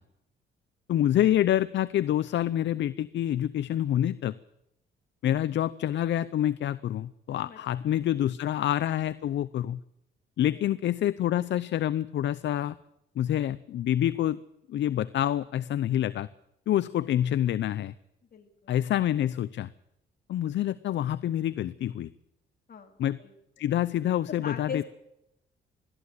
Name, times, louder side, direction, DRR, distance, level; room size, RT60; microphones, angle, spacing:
voice 1, 0.9-4.3 5.2-9.8 10.4-12.8 13.2-14.4 14.7-16.3 16.7-17.9 18.7-19.7 20.3-22.1 23.0-23.2 23.6-24.8, left 11 dB, 65° left, 16 dB, 0.7 m, -27 dB
voice 2, 7.4-8.0 10.5-10.6 18.3-18.7 20.5-20.6 22.7-23.3 24.2-24.8, left 7 dB, 50° left, 3 dB, 3.6 m, -41 dB
21.5 x 14.0 x 9.5 m, 0.84 s
cardioid pair, 90°, 20 cm